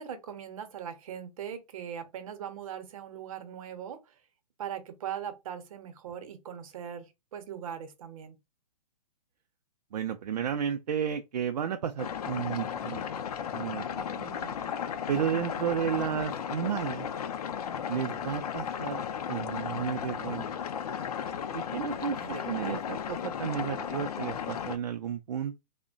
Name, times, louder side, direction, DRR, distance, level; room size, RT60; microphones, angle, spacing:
voice 1, 0.0-4.2 4.6-8.3 14.3-14.5 22.0-22.7 23.8-24.1, right 8 dB, 55° right, 0.7 m, -40 dB
voice 2, 9.9-13.0 13.5-14.3 15.1-17.1 17.9-20.5 21.5-22.2 22.5-25.6, right 8 dB, 75° right, 0.4 m, -32 dB
sound 1, 12.0-24.8, left 8 dB, 65° left, 0.5 m, -35 dB
3.4 x 2.1 x 2.4 m
figure-of-eight pair, 120°, 21 cm